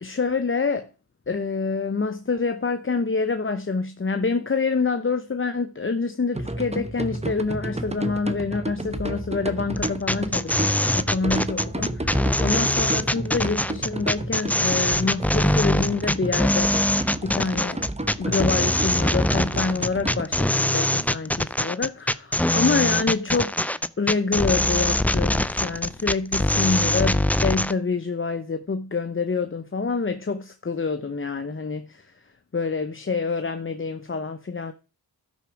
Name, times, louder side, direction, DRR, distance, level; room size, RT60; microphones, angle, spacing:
voice 1, 0.0-0.9 1.3-16.9 17.2-17.8 18.2-23.5 24.0-32.1 32.5-34.7, left 4 dB, 30° left, 0.8 m, -27 dB
sound 1, 6.3-20.2, right 1 dB, 15° right, 1.0 m, -31 dB
sound 2, 9.8-27.7, left 1 dB, 5° left, 0.4 m, -23 dB
12.5 x 6.1 x 4.7 m
cardioid pair, 45°, 43 cm